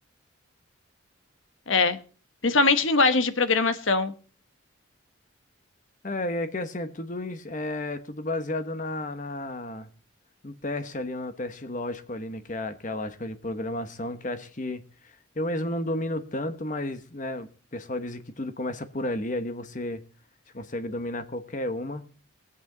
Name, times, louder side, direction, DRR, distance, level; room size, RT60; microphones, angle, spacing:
voice 1, 1.7-2.0 2.4-4.1, left 3 dB, 65° left, 1.1 m, -22 dB
voice 2, 6.0-9.9 10.4-20.0 20.5-22.1, left 1 dB, 35° left, 1.1 m, -32 dB
21.5 x 8.4 x 3.9 m
head